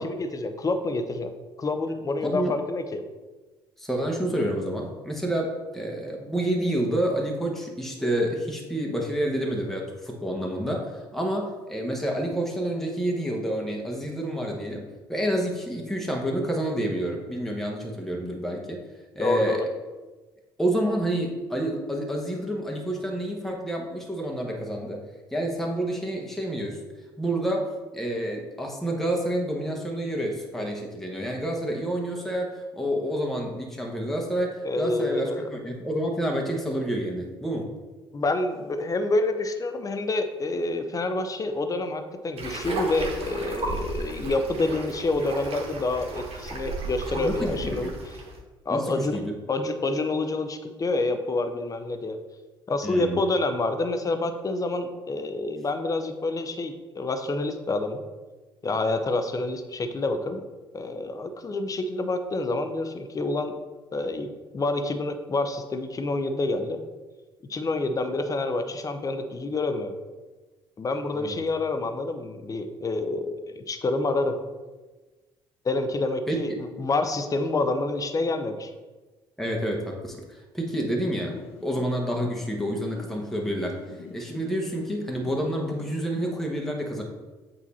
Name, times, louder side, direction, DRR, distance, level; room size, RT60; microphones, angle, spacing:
voice 1, 0.0-1.3 1.6-3.0 19.2-19.6 34.6-35.4 38.1-47.9 48.7-49.2 49.5-52.2 52.7-58.0 58.6-60.4 60.7-63.6 63.9-66.8 67.5-69.9 70.8-74.4 75.6-78.7, left 2 dB, 30° left, 8 dB, 0.7 m, -28 dB
voice 2, 2.2-2.5 3.8-18.8 19.1-19.6 20.6-25.0 25.3-26.8 27.2-27.7 27.9-37.7 47.2-47.9 48.7-49.3 52.8-53.2 71.1-71.4 76.3-76.6 79.4-83.8 84.1-87.0, right 1 dB, ahead, -1 dB, 1.2 m, -29 dB
sound 1, 42.4-48.4, right 2 dB, 55° right, 1.2 m, -34 dB
sound 2, 81.3-86.3, left 6 dB, 60° left, 0.7 m, -44 dB
8.1 x 2.8 x 4.2 m, 1.3 s
hypercardioid pair, 50°, 12 cm